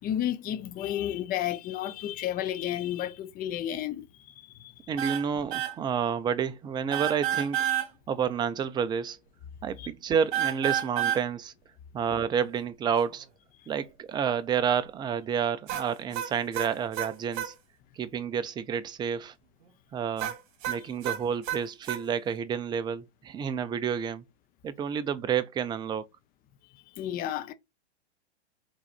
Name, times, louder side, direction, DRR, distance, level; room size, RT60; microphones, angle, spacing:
voice 1, 0.0-4.9 9.8-9.9 26.9-27.5, left 11 dB, 25° left, 0.7 m, -32 dB
voice 2, 4.9-7.7 8.1-9.2 9.6-11.5 11.9-13.3 13.7-17.5 18.0-19.3 19.9-20.4 20.7-24.2 24.6-26.1, right 7 dB, 15° right, 0.5 m, -29 dB
sound 1, 5.0-5.2 5.5-5.7 6.9-7.9 10.3-11.2 15.7-17.5 20.2-22.0, right 11 dB, 50° right, 1.6 m, -30 dB
4.8 x 3.9 x 5.0 m
hypercardioid pair, 110°, 34 cm